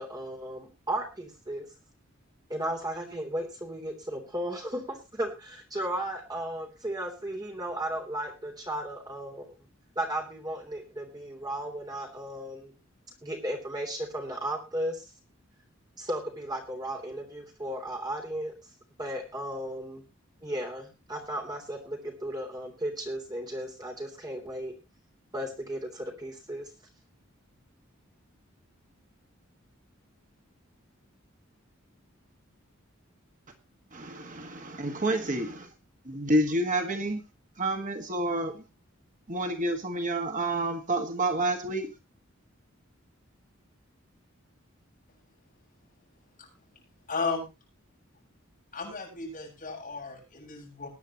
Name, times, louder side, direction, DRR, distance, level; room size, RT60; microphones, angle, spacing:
voice 1, 0.0-1.7 2.5-9.5 9.9-12.7 13.2-15.0 16.0-18.5 19.0-20.0 20.4-24.7 25.3-26.7, right 1 dB, 20° right, 2 dB, 3.2 m, -35 dB
voice 2, 33.9-35.7 36.1-37.2 37.6-38.6 39.3-41.9, right 1 dB, 40° right, 5 dB, 1.8 m, -29 dB
voice 3, 47.1-47.5 48.7-50.9, left 4 dB, 40° left, -1 dB, 7.8 m, -34 dB
20.5 x 10.5 x 3.0 m, 0.28 s
head